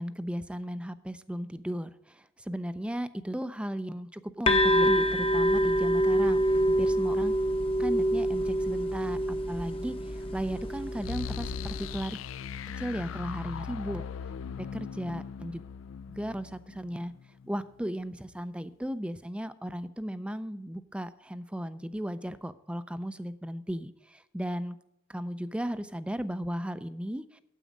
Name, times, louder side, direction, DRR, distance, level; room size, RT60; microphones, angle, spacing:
voice 1, 0.0-6.4 6.7-7.4 7.8-12.2 12.8-14.0 14.6-15.6 16.1-17.2 17.4-24.8 25.1-27.4, equal, 5° right, 13 dB, 0.4 m, -35 dB
sound 1, 4.5-12.0, equal, 25° left, 0.8 m, -26 dB
sound 2, 11.0-17.8, left 7 dB, 80° left, 0.4 m, -39 dB
9.3 x 8.3 x 5.1 m, 0.82 s
head